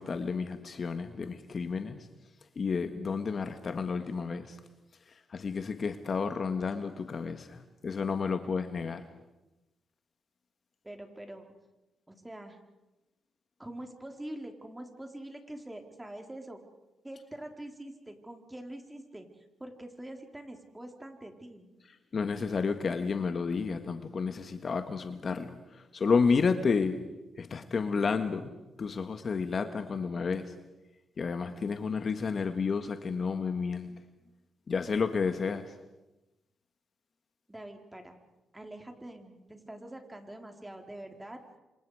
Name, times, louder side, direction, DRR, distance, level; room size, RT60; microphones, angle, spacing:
voice 1, 0.0-2.1 2.5-4.5 5.3-9.0 22.1-25.6 25.9-27.1 27.4-30.5 31.2-33.9 34.7-35.7, left 5 dB, 50° left, 8 dB, 1.7 m, -31 dB
voice 2, 10.8-11.5 12.1-12.6 13.6-16.6 17.0-21.7 37.5-38.2 38.5-41.4, right 1 dB, 15° right, 4 dB, 4.1 m, -45 dB
29.5 x 26.0 x 5.0 m, 1.0 s
supercardioid pair, 60°, 0 cm